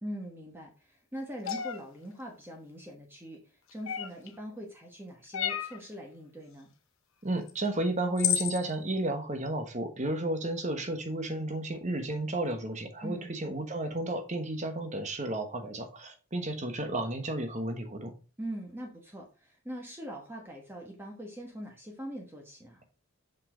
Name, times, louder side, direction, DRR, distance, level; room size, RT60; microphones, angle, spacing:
voice 1, 0.0-6.7 13.0-13.3 18.4-22.8, equal, 10° right, 0 dB, 1.2 m, -42 dB
sound 1, 1.5-1.8 3.9-4.3 5.3-5.8 7.5-7.6 8.2-8.6, left 10 dB, 65° left, 0.8 m, -30 dB
voice 2, 7.2-18.1, right 1 dB, 35° right, 6 dB, 1.2 m, -32 dB
6.4 x 5.5 x 3.8 m, 0.32 s
head